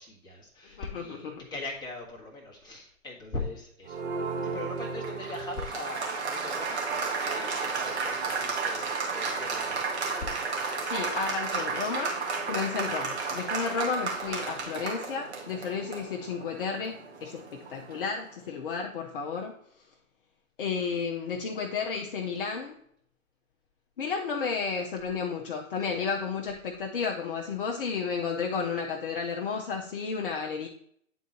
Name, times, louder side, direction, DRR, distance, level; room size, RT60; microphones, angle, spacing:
voice 1, 0.0-4.0 4.5-9.8 25.9-26.1, left 2 dB, 10° left, -3 dB, 1.3 m, -40 dB
voice 2, 0.7-1.5 10.8-12.2 12.5-19.6 20.6-22.8 24.0-30.7, left 5 dB, 40° left, 1 dB, 0.7 m, -32 dB
Applause, 3.8-18.2, right 4 dB, 50° right, 1.8 m, -33 dB
9.2 x 3.9 x 4.2 m, 0.65 s
figure-of-eight pair, 125°, 42 cm